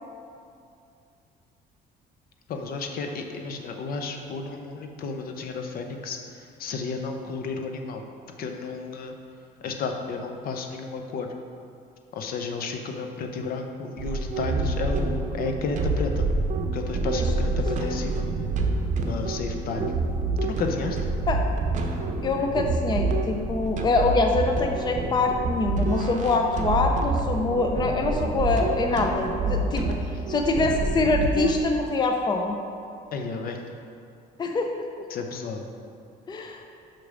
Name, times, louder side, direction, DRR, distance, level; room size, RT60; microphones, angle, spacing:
voice 1, 2.5-8.0 8.4-9.2 9.6-11.3 12.1-16.3 16.7-18.3 19.1-19.9 20.4-21.0 29.9-30.0 33.1-33.6 35.1-35.6, left 4 dB, 60° left, 4 dB, 0.7 m, -32 dB
sound 1, 14.0-31.6, right 2 dB, 45° right, 0.8 m, -27 dB
voice 2, 22.2-29.9 30.3-32.6 34.4-34.9 36.3-36.6, left 3 dB, 25° left, 3 dB, 0.5 m, -24 dB
5.9 x 4.9 x 5.0 m, 2.5 s
cardioid pair, 110°, 17 cm